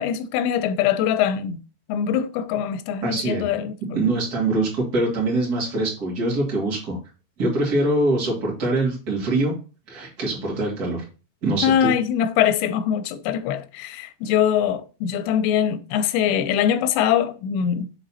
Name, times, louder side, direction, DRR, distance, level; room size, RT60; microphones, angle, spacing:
voice 1, 0.0-1.6 1.9-4.0 11.6-17.9, left 9 dB, 90° left, 2.8 m, -22 dB
voice 2, 3.0-3.5 3.9-7.0 7.4-9.5 9.9-11.0 11.4-11.9, right 2 dB, 30° right, 1.9 m, -23 dB
6.7 x 4.0 x 4.1 m
omnidirectional pair, 5.0 m